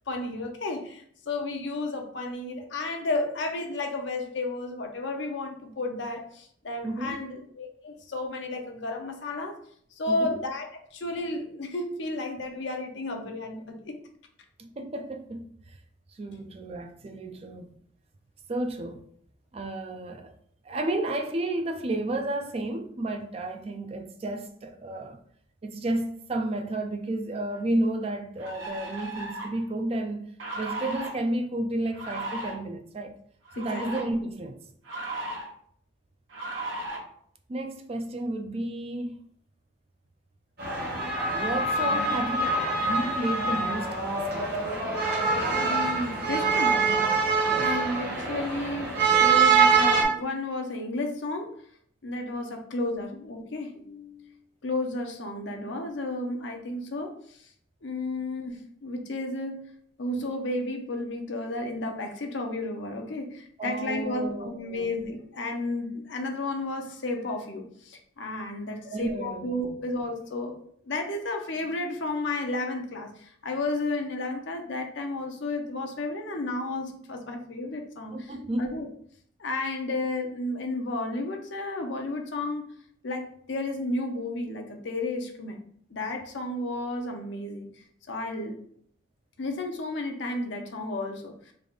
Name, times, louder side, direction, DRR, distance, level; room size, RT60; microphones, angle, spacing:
voice 1, 0.1-9.6 10.0-14.0 33.6-33.8 45.6-46.8 47.5-51.6 52.0-54.3 54.6-57.5 57.8-59.7 60.0-70.6 70.9-78.9 79.4-82.6 83.0-85.6 85.9-87.7 88.1-88.6 89.4-91.5, left 2 dB, 65° left, 0.6 m, -32 dB
voice 2, 6.8-7.2 10.1-10.4 14.6-15.5 16.1-17.7 18.5-19.0 19.5-20.3 20.6-25.2 25.6-30.3 30.6-33.1 33.6-34.6 37.5-39.2 41.3-44.6 47.5-47.7 63.6-64.9 68.8-69.5 78.1-78.7, right 1 dB, 30° right, 0.3 m, -32 dB
sound 1, 27.5-27.6 28.4-29.6 30.4-31.1 31.9-32.5 33.4-34.0 34.8-35.5 36.3-37.0, right 2 dB, 80° right, 1.0 m, -35 dB
sound 2, 40.6-50.0, right 4 dB, 50° right, 1.0 m, -24 dB
3.3 x 2.5 x 3.8 m
head